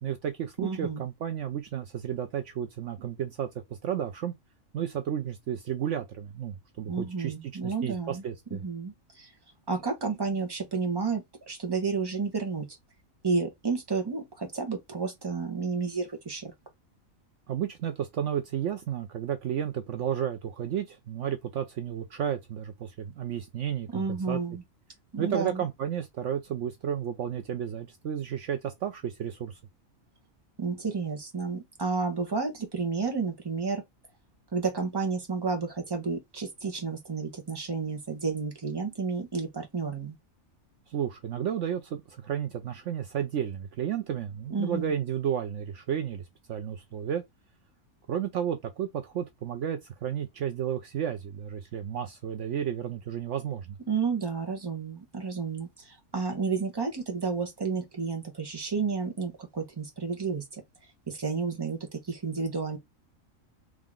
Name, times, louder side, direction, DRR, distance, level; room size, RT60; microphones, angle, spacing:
voice 1, 0.0-4.3 4.7-8.6 17.5-24.4 25.2-29.6 40.9-47.2 48.1-53.8, right 9 dB, 65° right, 0.9 m, -32 dB
voice 2, 0.6-1.0 6.9-8.2 8.5-9.3 9.7-12.7 13.2-16.5 23.9-24.6 25.1-25.6 30.6-33.8 34.5-40.2 44.5-44.9 53.9-60.6 61.1-62.8, right 4 dB, 20° right, 1.2 m, -31 dB
3.8 x 3.0 x 3.6 m
omnidirectional pair, 1.4 m